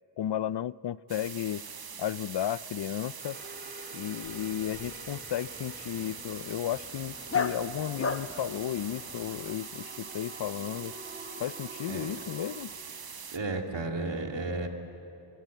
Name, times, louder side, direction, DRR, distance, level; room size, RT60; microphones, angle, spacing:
voice 1, 0.2-1.6 2.0-3.4 3.9-11.0 11.4-12.7, left 11 dB, 65° left, 20 dB, 0.5 m, -34 dB
sound 1, 1.1-13.4, right 6 dB, 55° right, 1.0 m, -43 dB
sound 2, 3.2-12.6, right 1 dB, 25° right, 2.9 m, -49 dB
Dog, 4.2-9.5, left 5 dB, 30° left, 0.9 m, -37 dB
voice 2, 13.3-14.7, right 2 dB, 75° right, 3 dB, 2.3 m, -33 dB
24.0 x 22.5 x 8.3 m, 2.8 s
wide cardioid pair, 85°, 44 cm